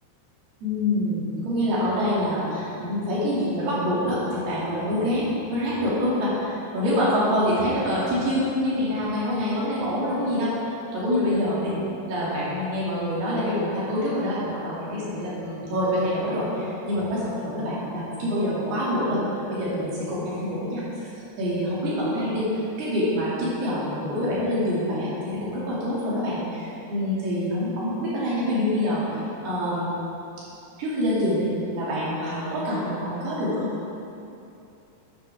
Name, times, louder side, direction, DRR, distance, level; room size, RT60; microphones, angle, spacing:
voice 1, 0.6-10.5 10.9-11.8 12.1-19.2 19.5-21.1 21.4-29.9 30.8-33.7, left 1 dB, 65° right, -9 dB, 4.5 m, -26 dB
11.0 x 10.0 x 3.6 m, 2.8 s
omnidirectional pair, 5.0 m